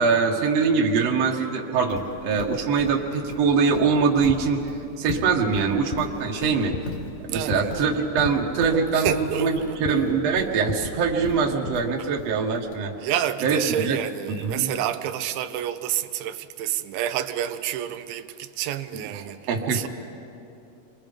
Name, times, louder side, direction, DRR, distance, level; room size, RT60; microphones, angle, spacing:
voice 1, 0.0-4.6 5.0-6.8 7.2-12.9 13.4-14.0 14.4-14.7 19.1-19.9, right 5 dB, 55° right, 2.0 m, -23 dB
Livestock farm animals working animals, 1.9-12.7, left 2 dB, 50° left, 3.6 m, -38 dB
sound 1, 4.3-11.7, left 7 dB, 70° left, 1.7 m, -38 dB
voice 2, 7.3-7.7 9.0-9.8 13.0-19.4 19.7-19.9, right 11 dB, 80° right, 2.4 m, -29 dB
29.5 x 23.5 x 5.3 m
omnidirectional pair, 4.3 m